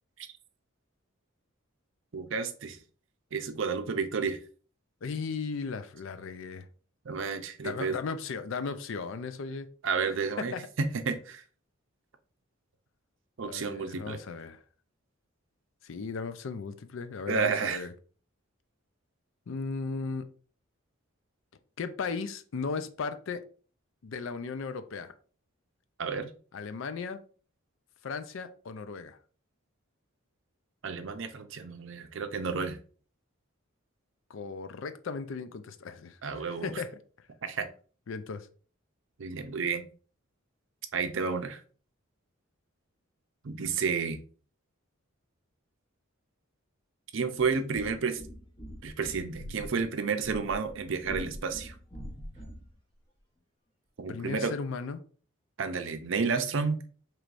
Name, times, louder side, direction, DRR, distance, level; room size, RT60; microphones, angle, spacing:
voice 1, 2.1-2.8 3.3-4.4 7.0-8.0 9.8-11.4 13.4-14.2 17.3-17.9 26.0-26.3 30.8-32.8 36.2-36.8 37.4-37.7 39.2-39.9 40.9-41.6 43.4-44.2 47.1-48.2 48.8-51.7 54.0-54.5 55.6-56.8, right 5 dB, 65° right, 0.5 m, -31 dB
voice 2, 5.0-6.7 7.6-9.7 10.5-10.7 13.4-14.6 15.8-17.9 19.5-20.2 21.8-23.4 24.0-25.1 26.5-27.2 28.0-29.2 34.3-37.0 38.1-38.5 54.1-55.0, left 4 dB, 65° left, 0.4 m, -36 dB
sound 1, 47.3-52.7, equal, 25° left, 0.9 m, -44 dB
4.7 x 3.1 x 2.5 m
head